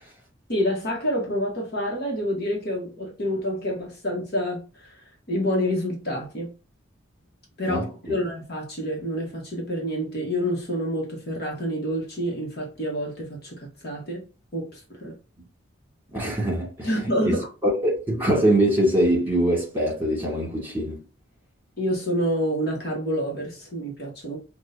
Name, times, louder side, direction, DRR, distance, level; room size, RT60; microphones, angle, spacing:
voice 1, 0.5-6.5 7.6-14.2 14.5-15.1 16.8-17.4 21.8-24.4, equal, 50° left, 1.3 m, -28 dB
voice 2, 7.7-8.2 16.1-16.9 17.2-21.0, right 1 dB, 10° right, 2.0 m, -23 dB
6.1 x 2.4 x 2.6 m
head